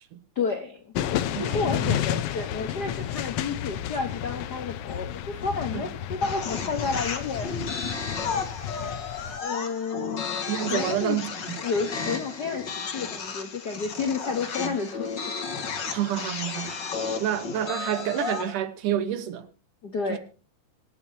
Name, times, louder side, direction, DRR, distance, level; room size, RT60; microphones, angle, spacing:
voice 1, 0.3-0.9 1.3-7.5 9.4-10.4 10.7-11.2 11.6-15.1 15.5-15.7 19.8-20.2, left 4 dB, 60° left, 1.0 m, -31 dB
sound 1, 0.9-9.4, left 10 dB, 80° left, 1.3 m, -31 dB
voice 2, 1.3-2.0 5.7-5.8 10.5-11.6 14.6-14.7 15.9-16.9 17.2-19.5 20.1-20.2, right 11 dB, 80° right, 2.8 m, -29 dB
sound 2, 6.2-18.5, left 5 dB, 40° left, 2.1 m, -33 dB
26.0 x 8.8 x 2.8 m
omnidirectional pair, 3.6 m